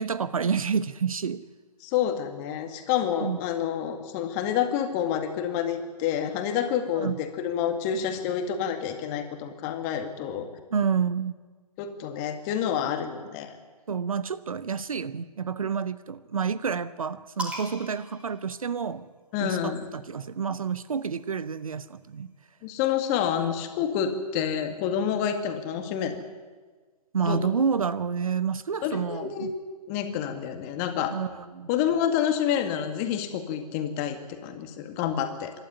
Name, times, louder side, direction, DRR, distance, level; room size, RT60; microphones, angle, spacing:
voice 1, 0.0-1.4 3.2-3.4 6.9-7.2 10.7-11.3 13.9-19.1 19.4-22.3 27.1-29.5 31.1-31.7, right 6 dB, 60° right, 15 dB, 1.0 m, -29 dB
voice 2, 1.8-10.5 11.8-13.6 19.3-19.9 22.6-26.2 27.3-27.4 28.8-29.6 29.9-31.2 31.7-35.5, left 9 dB, 25° left, 6 dB, 2.0 m, -28 dB
sound 1, 17.4-19.2 20.3-22.0, right 1 dB, 5° right, 2.6 m, -41 dB
26.5 x 12.5 x 9.9 m, 1.4 s
figure-of-eight pair, 135°, 20 cm